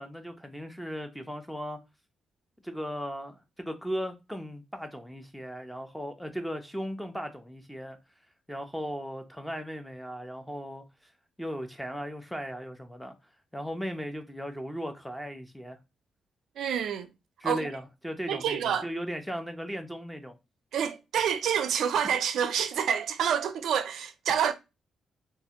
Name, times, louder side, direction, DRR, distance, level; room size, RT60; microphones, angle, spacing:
voice 1, 0.0-1.8 2.6-8.0 8.5-10.8 11.4-13.1 13.5-15.8 17.4-20.3, equal, ahead, 0.5 m, -37 dB
voice 2, 16.6-17.1 17.4-17.7 18.3-18.9 20.7-24.5, right 8 dB, 80° right, 0.4 m, -28 dB
3.2 x 2.4 x 2.8 m
cardioid pair, 130°, 0 cm